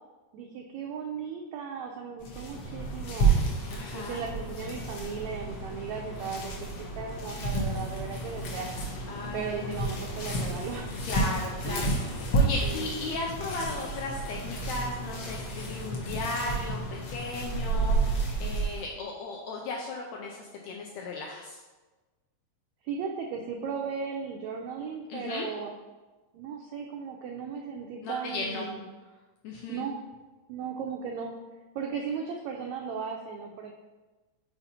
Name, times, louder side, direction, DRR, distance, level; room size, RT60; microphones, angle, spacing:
voice 1, 0.3-3.3 3.9-6.7 7.0-8.7 9.3-10.9 11.6-11.9 12.6-13.0 22.8-25.7 26.3-28.8 29.7-29.9 30.5-33.7, right 6 dB, 85° right, 2 dB, 1.6 m, -36 dB
sound 1, 2.2-18.8, right 3 dB, 65° left, 1.5 m, -31 dB
voice 2, 3.7-4.2 9.1-9.8 11.0-16.8 17.1-21.6 25.1-25.5 28.0-28.6 29.4-29.9, left 3 dB, 80° left, -1 dB, 1.6 m, -36 dB
5.7 x 4.1 x 4.1 m, 1.2 s
omnidirectional pair, 3.7 m